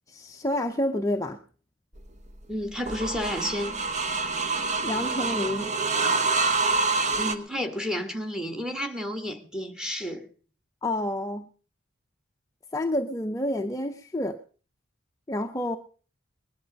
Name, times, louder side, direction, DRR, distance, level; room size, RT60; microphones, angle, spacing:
voice 1, 0.1-1.4 4.8-5.7 10.8-11.5 12.7-14.4 15.3-15.8, left 1 dB, 15° left, 0.6 m, -29 dB
sound 1, 2.0-7.3, right 3 dB, 35° right, 1.2 m, -27 dB
voice 2, 2.5-3.7 7.2-10.3, equal, 5° right, 1.5 m, -31 dB
19.5 x 11.0 x 5.2 m
head